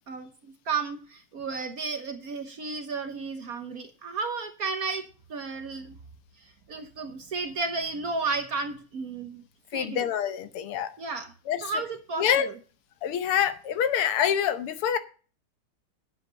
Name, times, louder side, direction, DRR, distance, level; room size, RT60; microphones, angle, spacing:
voice 1, 0.7-5.9 6.7-9.4 9.7-10.1 11.0-11.3 11.6-12.5, right 4 dB, 55° right, 8 dB, 1.1 m, -33 dB
voice 2, 9.7-10.9 11.5-11.7 12.2-12.5 13.0-15.0, left 9 dB, 80° left, 12 dB, 1.9 m, -26 dB
9.1 x 8.3 x 5.5 m, 0.38 s
omnidirectional pair, 2.4 m